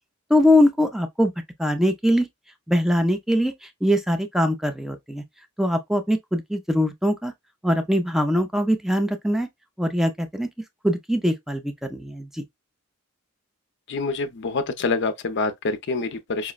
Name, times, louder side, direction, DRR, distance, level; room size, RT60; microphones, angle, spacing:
voice 1, 0.3-1.3 1.6-2.3 2.7-5.2 5.6-7.3 7.6-9.5 9.8-10.5 10.8-12.4, equal, ahead, 0.4 m, -22 dB
voice 2, 13.9-16.5, left 3 dB, 55° left, 0.5 m, -26 dB
4.8 x 2.1 x 2.2 m
head